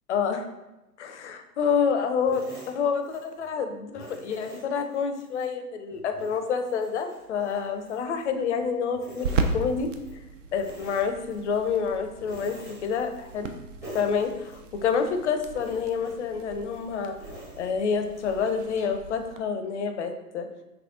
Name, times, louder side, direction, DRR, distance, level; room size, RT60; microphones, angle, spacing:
voice 1, 0.1-0.5 1.0-9.3 9.5-9.9 10.5-12.6 12.8-13.5 13.9-17.2 17.6-20.5, left 6 dB, 50° left, 7 dB, 0.5 m, -28 dB
sound 1, 2.3-3.5 3.9-5.5 5.9-8.6 8.9-10.2 10.5-11.8 12.2-13.5 13.8-15.1 15.5-19.0, right 1 dB, 5° right, 0.7 m, -47 dB
sound 2, 7.2-19.4, right 4 dB, 55° right, 0.5 m, -37 dB
3.6 x 3.2 x 2.4 m, 1.0 s
figure-of-eight pair, 115°, 48 cm